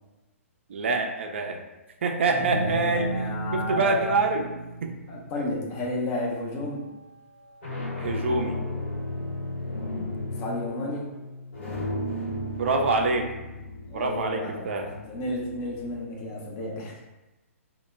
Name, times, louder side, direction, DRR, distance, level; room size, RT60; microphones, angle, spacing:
voice 1, 0.7-1.6 2.0-3.2 3.5-4.5 4.8-4.9 8.0-8.6 12.6-13.3 13.9-14.9, right 3 dB, 55° right, 3 dB, 0.3 m, -26 dB
sound 1, 2.3-6.5, right 2 dB, 75° left, 0.6 m, -35 dB
voice 2, 2.3-4.1 5.1-6.9 9.7-11.1 13.9-16.9, left 1 dB, 25° left, -3 dB, 0.5 m, -32 dB
sound 2, 6.1-6.6 7.4-16.0, left 1 dB, 55° left, 0.9 m, -35 dB
2.1 x 2.0 x 3.2 m, 1.0 s
figure-of-eight pair, 120°, 8 cm